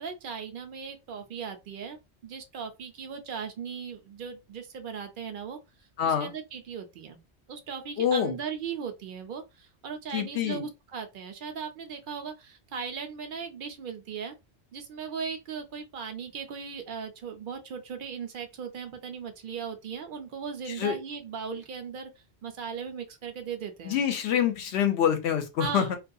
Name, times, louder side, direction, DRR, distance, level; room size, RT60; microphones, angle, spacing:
voice 1, 0.0-5.6 6.0-7.2 7.5-14.3 14.7-22.1 22.4-24.0 25.6-26.0, right 6 dB, 55° right, 0.6 m, -38 dB
voice 2, 6.0-6.3 8.0-8.3 10.1-10.6 20.8-21.0 23.9-26.0, left 9 dB, 75° left, 0.8 m, -26 dB
2.3 x 2.3 x 2.6 m
omnidirectional pair, 1.2 m